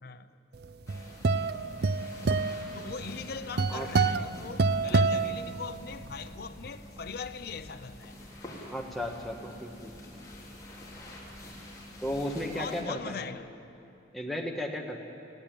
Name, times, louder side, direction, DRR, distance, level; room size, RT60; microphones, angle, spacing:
voice 1, 0.0-0.3 2.7-8.1 12.5-13.5, left 5 dB, 55° left, 0.7 m, -40 dB
sound 1, 0.6-6.1, right 4 dB, 55° right, 0.5 m, -28 dB
sound 2, 0.9-12.8, left 1 dB, 20° left, 3.4 m, -47 dB
sound 3, 5.7-12.7, equal, 15° right, 5.1 m, -55 dB
voice 2, 8.7-9.9 12.0-13.4 14.1-15.1, left 1 dB, ahead, 1.5 m, -35 dB
20.0 x 16.0 x 8.9 m
head